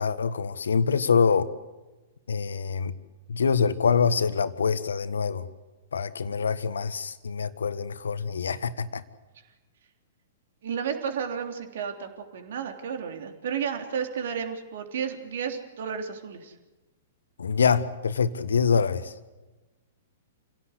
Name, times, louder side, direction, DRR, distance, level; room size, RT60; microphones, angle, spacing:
voice 1, 0.0-1.5 2.3-2.9 3.3-5.5 5.9-9.0 17.4-19.1, left 6 dB, 70° left, 13 dB, 1.5 m, -25 dB
voice 2, 10.6-16.5, right 7 dB, 60° right, 5 dB, 3.4 m, -32 dB
28.0 x 17.0 x 8.2 m, 1.2 s
figure-of-eight pair, 110°, 0 cm